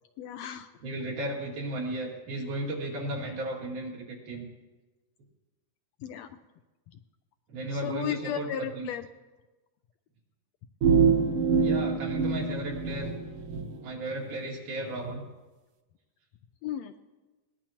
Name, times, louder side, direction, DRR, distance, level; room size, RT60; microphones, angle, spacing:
voice 1, 0.2-0.7 6.0-6.3 7.7-9.1 16.6-16.9, left 10 dB, 75° left, 8 dB, 1.6 m, -34 dB
voice 2, 0.8-4.5 7.5-8.9 11.6-13.1 13.8-15.2, right 1 dB, 90° right, -2 dB, 4.0 m, -35 dB
sound 1, 10.8-13.7, right 5 dB, 60° right, 1.6 m, -25 dB
21.0 x 18.5 x 3.0 m, 1.2 s
omnidirectional pair, 3.5 m